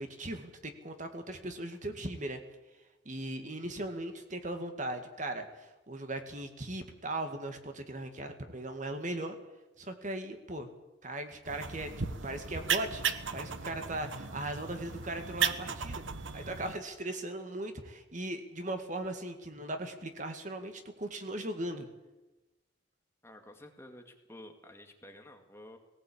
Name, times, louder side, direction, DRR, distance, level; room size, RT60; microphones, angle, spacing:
voice 1, 0.0-2.4 3.1-9.4 9.8-10.7 11.0-11.9 12.2-13.0 13.3-16.0 16.3-21.9, right 1 dB, 40° right, 6 dB, 2.1 m, -38 dB
sound 1, 11.5-16.7, right 6 dB, 90° right, 1.3 m, -35 dB
voice 2, 23.2-25.8, left 1 dB, 15° left, 4 dB, 2.0 m, -51 dB
19.0 x 18.0 x 8.7 m, 1.0 s
head